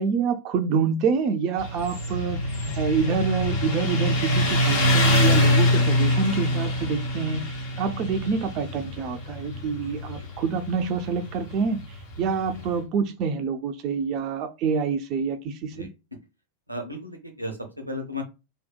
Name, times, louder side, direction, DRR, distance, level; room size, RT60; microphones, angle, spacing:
voice 1, 0.0-7.5 7.8-15.9, right 5 dB, 40° right, 0.3 m, -27 dB
Motorcycle, 1.6-12.7, left 1 dB, 50° left, 0.7 m, -24 dB
voice 2, 16.7-18.2, left 1 dB, 90° right, 0.6 m, -34 dB
2.7 x 2.1 x 2.2 m
figure-of-eight pair, 90°, 0 cm